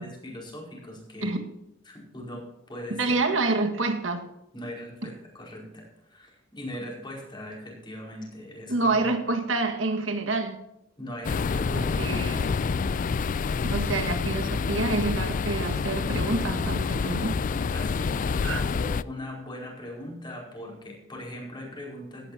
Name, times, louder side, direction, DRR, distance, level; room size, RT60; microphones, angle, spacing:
voice 1, 0.0-1.4 1.8-3.2 4.5-9.2 11.0-12.4 17.7-22.3, left 1 dB, 25° left, -2 dB, 4.8 m, -40 dB
voice 2, 3.0-4.2 8.7-10.6 11.7-12.5 13.7-17.3 18.4-18.6, right 3 dB, 90° right, 5 dB, 1.7 m, -27 dB
sound 1, 11.2-19.0, left 5 dB, 45° left, 0.3 m, -27 dB
16.5 x 12.0 x 2.8 m, 0.86 s
head